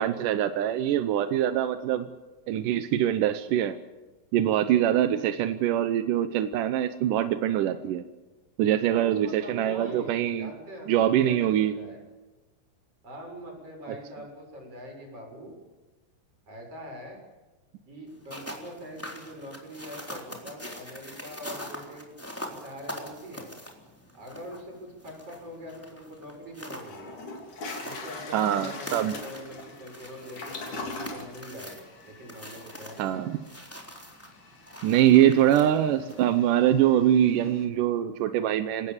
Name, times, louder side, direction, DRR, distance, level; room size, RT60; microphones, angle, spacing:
voice 1, 0.0-2.1 2.5-3.8 4.3-8.0 8.6-10.5 10.9-11.7 28.3-29.2 33.0-33.4 34.8-38.9, right 11 dB, 75° right, 10 dB, 2.1 m, -23 dB
voice 2, 8.9-12.0 13.0-15.5 16.5-17.2 17.9-22.2 22.5-23.5 24.1-27.1 27.7-33.3, equal, 35° right, 1 dB, 7.6 m, -43 dB
Footsteps on Crunchy Snow, 18.1-36.4, equal, 5° left, 3.2 m, -43 dB
Toilet flush, 26.3-26.4 26.8-37.6, left 3 dB, 50° left, 4.5 m, -43 dB
28.5 x 18.0 x 7.4 m, 1.2 s
omnidirectional pair, 4.7 m